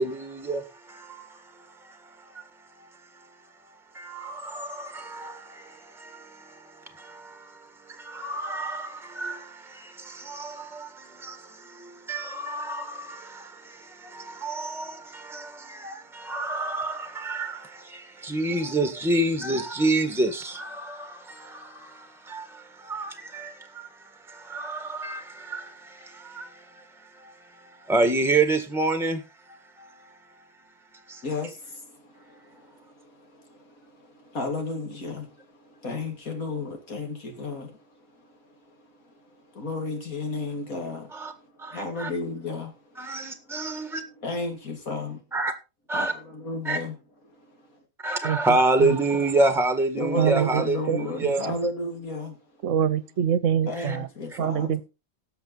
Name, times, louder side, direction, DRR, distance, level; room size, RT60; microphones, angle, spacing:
voice 1, 0.0-2.5 3.9-29.2 29.5-29.9 31.1-31.2 41.1-41.3 41.6-42.1 43.0-44.0 45.3-45.5 45.9-46.1 46.6-46.8 48.0-51.4 53.8-54.0, right 2 dB, ahead, 1.4 m, -29 dB
voice 2, 31.2-38.2 38.8-39.1 39.5-41.2 41.7-43.0 43.9-45.2 45.9-47.0 47.5-47.6 50.0-52.4 53.7-54.7, left 2 dB, 80° left, 3.0 m, -33 dB
voice 3, 50.2-51.3 52.6-53.9 54.4-54.8, right 9 dB, 65° right, 1.1 m, -25 dB
17.0 x 6.6 x 4.0 m
omnidirectional pair, 1.5 m